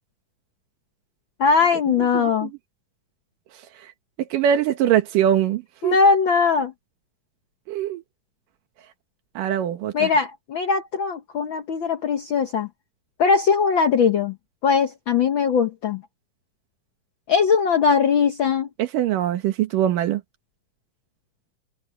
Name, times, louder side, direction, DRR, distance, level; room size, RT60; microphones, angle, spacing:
voice 1, 1.4-2.5 5.8-6.7 9.9-12.7 13.2-14.3 14.6-16.0 17.3-18.7, left 5 dB, 75° left, 1.1 m, -20 dB
voice 2, 2.0-2.5 3.8-3.9 4.3-6.0 7.7-8.0 9.4-10.1 18.8-20.2, right 10 dB, 85° right, 2.9 m, -22 dB
omnidirectional pair, 3.7 m